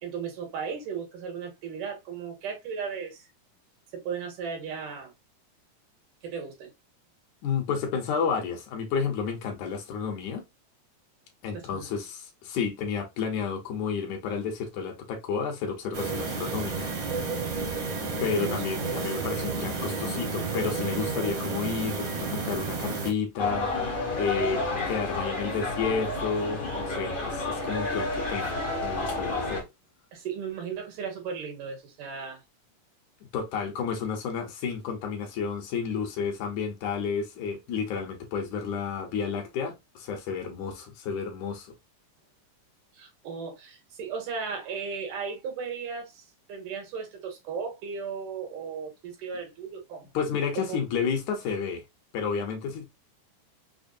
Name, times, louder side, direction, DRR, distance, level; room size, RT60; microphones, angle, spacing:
voice 1, 0.0-3.3 3.9-5.1 6.2-6.7 11.5-11.9 18.1-18.9 30.1-32.4 42.9-50.1 50.7-50.8, right 6 dB, 85° right, 2.9 m, -36 dB
voice 2, 7.4-10.4 11.4-16.9 18.2-23.7 24.2-29.7 33.3-41.7 50.1-51.8 52.1-52.8, left 6 dB, 75° left, 2.2 m, -31 dB
sound 1, 15.9-23.1, right 4 dB, 55° right, 1.1 m, -31 dB
sound 2, 23.4-29.6, left 2 dB, 50° left, 0.6 m, -30 dB
5.9 x 2.0 x 2.6 m
omnidirectional pair, 3.6 m